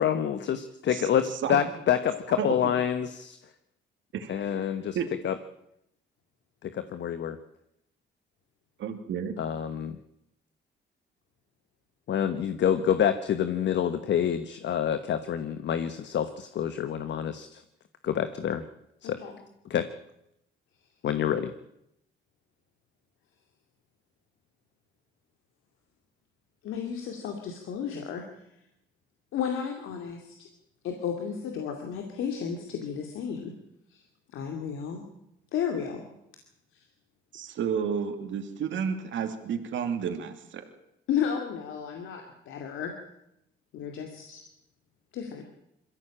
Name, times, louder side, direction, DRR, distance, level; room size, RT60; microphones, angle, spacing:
voice 1, 0.0-3.4 4.3-5.0 5.2-5.3 6.6-7.4 9.4-10.0 12.1-17.6 18.0-18.6 19.0-19.2 19.7-19.9 21.0-21.5, left 9 dB, 65° left, 10 dB, 1.2 m, -27 dB
voice 2, 8.8-9.4 37.3-40.6, right 7 dB, 70° right, 6 dB, 2.7 m, -31 dB
voice 3, 26.6-28.2 29.3-30.5 30.8-33.5 33.9-34.0 34.3-35.0 35.5-36.0 36.7-36.8 41.1-42.9 43.7-44.4 45.1-45.4, left 7 dB, 85° left, 3 dB, 2.7 m, -33 dB
22.0 x 15.0 x 8.8 m, 0.82 s
cardioid pair, 90°, 20 cm